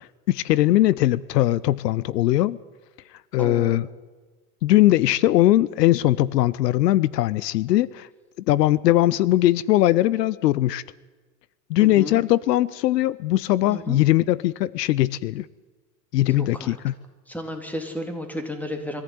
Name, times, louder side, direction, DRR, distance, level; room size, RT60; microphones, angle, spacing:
voice 1, 0.0-2.6 3.3-3.9 4.6-8.1 8.5-10.8 11.7-15.5 16.1-16.9, left 15 dB, 85° left, 21 dB, 0.8 m, -20 dB
voice 2, 3.4-3.8 11.8-12.2 13.7-14.0 16.3-16.8 17.3-19.0, left 1 dB, 5° left, 6 dB, 3.4 m, -32 dB
23.5 x 15.0 x 9.4 m, 1.3 s
supercardioid pair, 120°, 48 cm